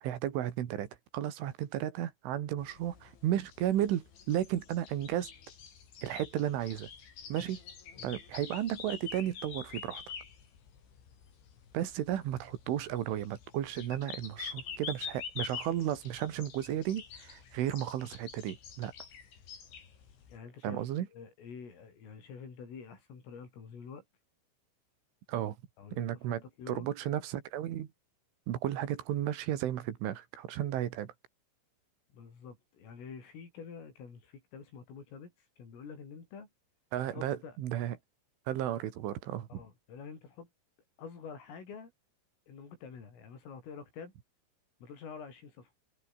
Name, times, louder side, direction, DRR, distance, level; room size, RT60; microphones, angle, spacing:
voice 1, 0.0-0.9 1.1-5.3 6.0-6.9 7.3-7.6 8.0-10.0 11.7-18.9 20.6-21.1 25.3-25.6 25.9-26.4 26.7-27.9 28.5-31.1 36.9-38.0 38.5-39.6, right 11 dB, 75° right, 4.5 m, -33 dB
sound 1, 2.6-20.4, left 7 dB, 65° left, 6.9 m, -47 dB
voice 2, 20.3-24.1 25.8-26.9 32.1-36.5 37.1-37.6 39.5-40.5 41.0-41.9 42.5-44.1 44.8-45.7, left 6 dB, 85° left, 9.0 m, -48 dB
omnidirectional pair, 5.7 m